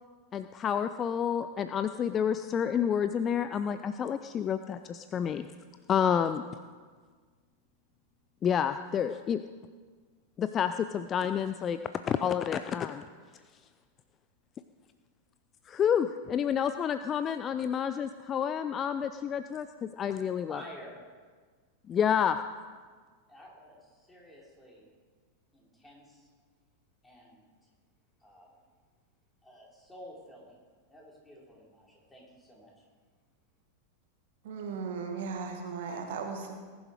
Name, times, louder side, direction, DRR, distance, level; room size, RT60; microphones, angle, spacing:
voice 1, 0.3-5.5 5.9-6.4 8.4-9.4 10.4-11.8 12.1-13.0 15.7-20.6 21.9-22.4, left 8 dB, 25° left, 10 dB, 0.5 m, -29 dB
voice 2, 20.5-21.0 23.3-24.9 25.5-26.3 27.0-27.5 28.2-28.6 29.4-30.6 30.9-32.9, equal, 10° left, -4 dB, 5.0 m, -51 dB
voice 3, 34.4-36.6, right 5 dB, 55° right, 4 dB, 2.0 m, -36 dB
19.5 x 11.5 x 4.9 m, 1.5 s
figure-of-eight pair, 90°, 0 cm